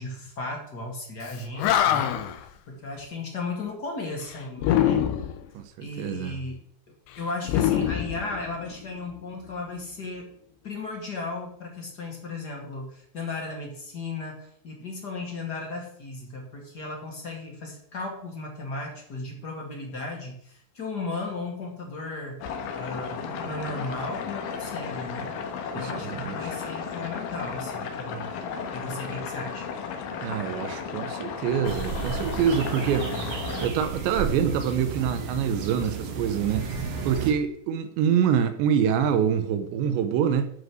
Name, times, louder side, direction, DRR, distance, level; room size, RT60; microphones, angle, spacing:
voice 1, 0.0-5.1 5.8-6.6 7.2-10.4 10.6-22.4 22.8-25.3 25.7-28.4 28.7-29.7, left 3 dB, 35° left, 1.8 m, -35 dB
Animal, 1.3-1.4 1.6-2.4 4.6-5.4 7.5-8.8, left 11 dB, 90° left, 3.2 m, -24 dB
voice 2, 5.5-6.4 25.8-26.5 30.2-33.3 33.6-36.6 37.0-40.5, right 8 dB, 90° right, 3.3 m, -25 dB
sound 1, 22.4-33.7, left 6 dB, 70° left, 2.4 m, -34 dB
sound 2, 31.6-37.3, right 4 dB, 65° right, 1.4 m, -33 dB
12.5 x 5.2 x 6.2 m
omnidirectional pair, 5.0 m